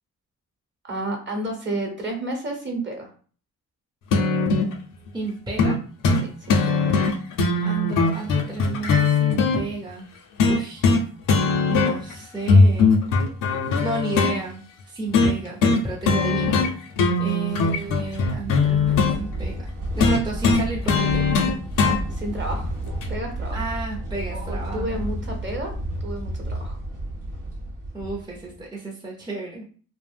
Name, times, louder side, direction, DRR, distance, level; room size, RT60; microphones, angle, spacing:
voice 1, 0.8-3.1 6.2-6.9 17.2-17.4 21.8-22.7 23.1-23.6 24.3-25.7 26.0-26.8, right 1 dB, 35° right, 2 dB, 1.0 m, -31 dB
sound 1, 4.1-4.7 5.6-5.8 6.0-6.2 6.5-9.6 10.4-11.0 11.3-12.1 12.5-14.3 15.1-15.3 15.6-15.8 16.1-16.7 17.0-19.2 20.0-22.0 23.0-23.1, left 4 dB, 70° left, 0.5 m, -19 dB
voice 2, 5.1-5.7 7.6-10.1 10.5-10.9 11.7-12.9 13.8-16.6 17.2-19.6 20.0-21.2 23.5-25.0 27.9-29.7, right 2 dB, 15° right, -3 dB, 0.6 m, -32 dB
sound 2, 17.8-28.6, right 1 dB, 70° right, 0.9 m, -32 dB
2.4 x 2.0 x 3.3 m, 0.43 s
cardioid pair, 65°, 34 cm